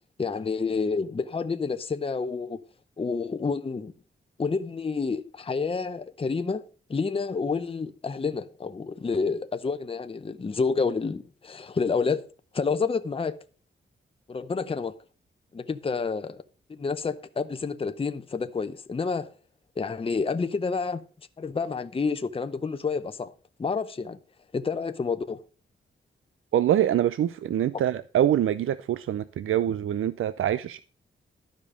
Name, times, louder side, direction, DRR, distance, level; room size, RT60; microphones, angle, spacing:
voice 1, 0.2-2.6 3.0-3.9 4.4-6.6 6.9-12.2 12.5-13.4 14.3-15.0 15.5-16.4 16.7-19.3 19.8-21.0 21.4-23.3 23.6-24.2 24.5-25.4 27.7-27.8, left 4 dB, 25° left, 0.7 m, -29 dB
voice 2, 26.5-30.8, right 11 dB, 85° right, 0.5 m, -25 dB
12.0 x 5.2 x 6.4 m
wide cardioid pair, 100°, 21 cm